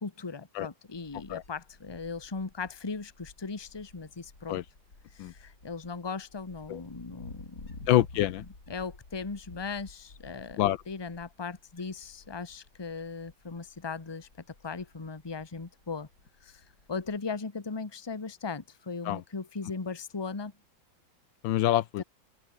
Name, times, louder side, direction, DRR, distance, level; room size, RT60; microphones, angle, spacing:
voice 1, 0.0-4.6 5.1-7.9 8.7-14.3 14.6-16.1 16.4-16.6 16.9-20.5 22.0-22.1, left 4 dB, 15° left, 1.1 m, -38 dB
Wind, 0.9-17.2, left 3 dB, 55° left, 5.4 m, -53 dB
voice 2, 7.9-8.4 10.6-10.8 19.1-19.2 21.4-22.0, left 13 dB, 80° left, 1.5 m, -26 dB
open air
omnidirectional pair, 2.1 m